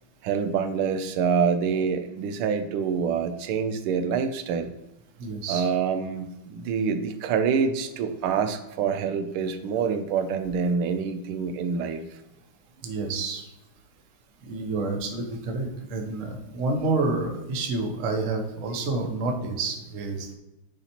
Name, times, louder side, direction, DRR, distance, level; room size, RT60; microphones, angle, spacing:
voice 1, 0.2-4.7 5.5-12.0, right 6 dB, 85° right, 8 dB, 1.5 m, -26 dB
voice 2, 5.2-5.7 12.8-13.5 14.4-20.3, right 3 dB, 50° right, 3 dB, 1.1 m, -29 dB
9.8 x 4.1 x 2.9 m, 0.95 s
omnidirectional pair, 2.3 m